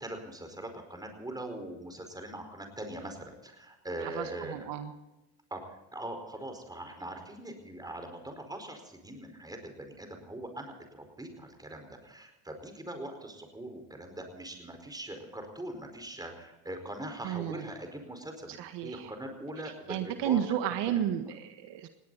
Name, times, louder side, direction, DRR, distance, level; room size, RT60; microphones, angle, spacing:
voice 1, 0.0-4.7 5.5-18.5 18.8-21.0, right 1 dB, 10° right, 5 dB, 4.8 m, -42 dB
voice 2, 4.0-4.9 17.2-17.7 18.6-19.1 19.9-21.9, right 10 dB, 65° right, 7 dB, 1.7 m, -32 dB
19.5 x 17.5 x 4.1 m, 0.99 s
supercardioid pair, 105°, 45 cm